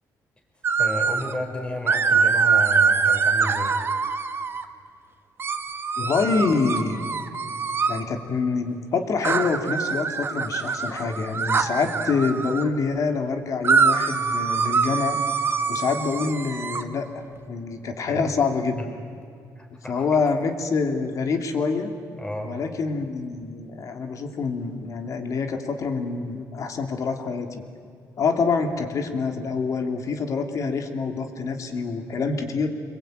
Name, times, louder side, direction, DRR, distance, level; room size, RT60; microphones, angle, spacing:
sound 1, 0.6-1.3 1.9-4.6 5.4-8.0 9.2-12.7 13.6-16.8, right 5 dB, 35° right, 1.4 m, -24 dB
voice 1, 0.8-3.8 18.1-18.3 18.8-18.9 19.6-20.0 22.2-22.6, left 1 dB, 15° left, 1 dB, 4.9 m, -32 dB
voice 2, 6.0-7.0 7.9-15.2 15.7-17.1 17.5-18.9 19.9-21.9 22.4-27.5 28.2-32.7, left 4 dB, 55° left, 6 dB, 2.7 m, -26 dB
26.0 x 22.0 x 9.1 m, 2.4 s
cardioid pair, 115°, 7 cm